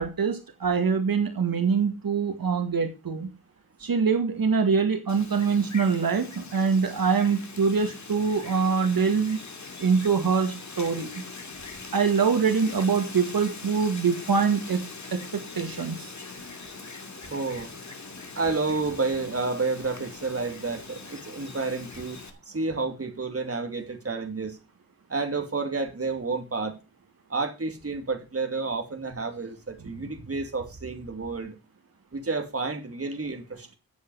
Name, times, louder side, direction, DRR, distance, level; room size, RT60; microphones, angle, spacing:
voice 1, 0.0-3.3 3.8-9.4 9.8-11.2 11.9-14.8 15.1-16.1, right 5 dB, 65° right, 6 dB, 2.0 m, -24 dB
Wind, 5.1-22.3, left 4 dB, 50° left, 2.6 m, -42 dB
voice 2, 17.3-17.7 18.3-22.2 22.5-24.6 25.1-26.8 27.3-31.6 32.1-33.8, right 3 dB, 40° right, 5 dB, 2.7 m, -30 dB
13.5 x 8.5 x 4.8 m, 0.28 s
wide cardioid pair, 130°, 37 cm